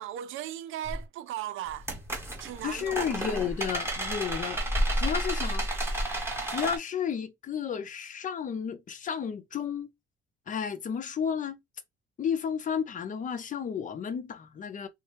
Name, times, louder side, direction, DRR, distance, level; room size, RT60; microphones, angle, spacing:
voice 1, 0.0-1.9 2.4-3.1, right 12 dB, 85° right, 0.5 m, -37 dB
sound 1, 0.9-1.0 1.7-6.8, right 1 dB, 10° right, 1.1 m, -31 dB
voice 2, 2.6-4.6 5.0-5.7 6.5-9.9 10.5-11.6 12.2-14.9, left 7 dB, 40° left, 0.6 m, -32 dB
3.9 x 2.2 x 3.3 m
cardioid pair, 150°, 20 cm